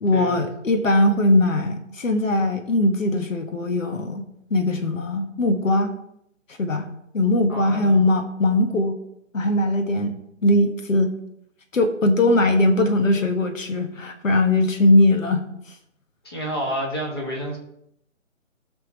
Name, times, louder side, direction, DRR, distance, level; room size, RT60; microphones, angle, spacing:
voice 1, 0.0-5.9 6.6-6.9 7.1-9.0 9.3-10.2 10.4-11.2 11.7-15.4, left 1 dB, 80° left, 6 dB, 1.7 m, -20 dB
voice 2, 7.5-8.0 16.2-17.6, equal, 20° left, 0 dB, 1.2 m, -29 dB
16.5 x 6.2 x 3.1 m, 0.75 s
hypercardioid pair, 175°, 39 cm